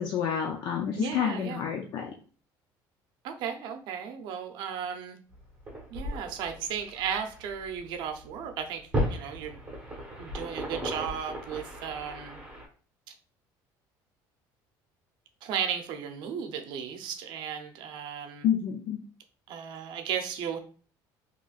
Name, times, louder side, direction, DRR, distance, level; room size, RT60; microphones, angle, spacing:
voice 1, 0.0-2.1 18.4-19.0, left 8 dB, 55° left, 1 dB, 0.5 m, -29 dB
voice 2, 1.0-1.6 3.2-5.2 5.9-8.8 9.1-9.6 10.2-12.4 15.4-18.5 19.5-20.6, right 8 dB, 65° right, 6 dB, 0.6 m, -35 dB
sound 1, 5.3-12.6, equal, 10° right, 1.2 m, -36 dB
3.9 x 3.0 x 2.4 m, 0.41 s
cardioid pair, 160°, 8 cm